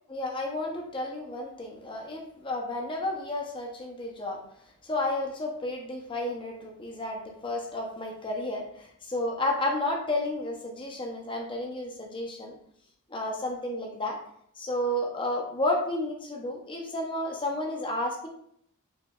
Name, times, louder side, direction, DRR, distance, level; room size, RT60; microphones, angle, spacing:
voice 1, 0.1-4.4 4.8-12.5 13.1-14.2 14.6-18.3, left 1 dB, 20° left, 0 dB, 0.7 m, -32 dB
4.8 x 3.1 x 2.3 m, 0.68 s
head